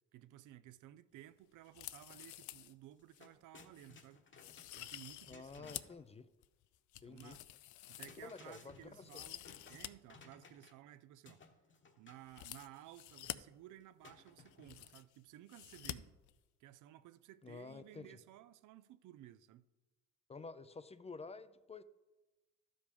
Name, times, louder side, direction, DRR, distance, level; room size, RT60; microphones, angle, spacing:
voice 1, 0.1-4.2 4.8-5.8 7.0-7.5 7.9-11.4 12.0-16.2 16.6-19.7, right 13 dB, 80° right, 0.5 m, -57 dB
sound 1, 1.6-2.7 3.1-3.2 3.7-3.9 4.4-6.0 6.4-8.5 8.9-9.9 10.2-10.3 12.3-13.4 14.2-14.3 14.4-15.2 15.5-15.9 16.2-16.3, left 14 dB, 75° left, 0.5 m, -49 dB
sound 2, 2.9-6.0 7.7-10.9 11.3-12.3 14.0-14.9, left 4 dB, 40° left, 1.1 m, -61 dB
voice 2, 5.3-6.3 7.0-7.4 8.2-9.2 17.4-18.1 20.3-21.8, left 4 dB, 20° left, 0.4 m, -50 dB
12.0 x 5.1 x 5.2 m
cardioid pair, 90°, 30 cm